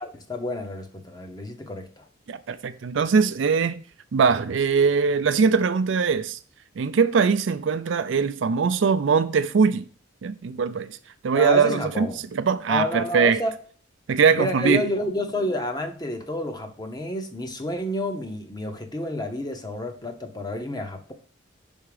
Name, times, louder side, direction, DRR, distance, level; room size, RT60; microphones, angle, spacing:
voice 1, 0.0-2.0 11.3-12.2 12.7-13.5 14.3-21.1, left 1 dB, 20° left, 0.7 m, -29 dB
voice 2, 2.3-3.8 4.1-6.4 6.8-9.8 10.2-11.0 11.2-13.4 14.1-14.8, right 5 dB, 70° right, 0.4 m, -21 dB
5.6 x 3.6 x 4.9 m
head